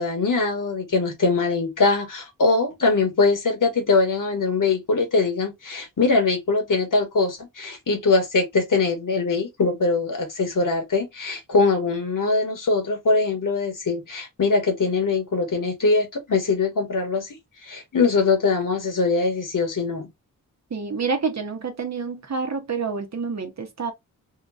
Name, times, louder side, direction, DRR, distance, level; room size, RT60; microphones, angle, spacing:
voice 1, 0.0-17.4 17.6-20.1, left 3 dB, 65° left, 1.3 m, -22 dB
voice 2, 20.7-23.9, right 5 dB, 50° right, 0.9 m, -28 dB
2.9 x 2.5 x 2.5 m
cardioid pair, 65°, 35 cm